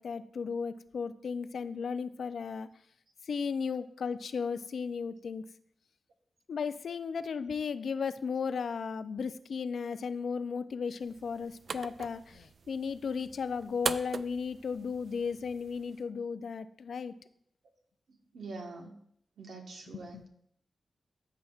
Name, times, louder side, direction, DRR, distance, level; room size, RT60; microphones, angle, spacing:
voice 1, 0.0-2.7 3.3-5.4 6.5-17.1 20.1-20.2, left 5 dB, 75° left, 12 dB, 0.4 m, -35 dB
sound 1, 11.0-16.0, right 5 dB, 65° right, 0.3 m, -41 dB
voice 2, 18.1-19.0 19.4-20.3, right 3 dB, 85° right, 2 dB, 1.2 m, -45 dB
13.5 x 5.7 x 2.4 m, 0.68 s
cardioid pair, 60°, 0 cm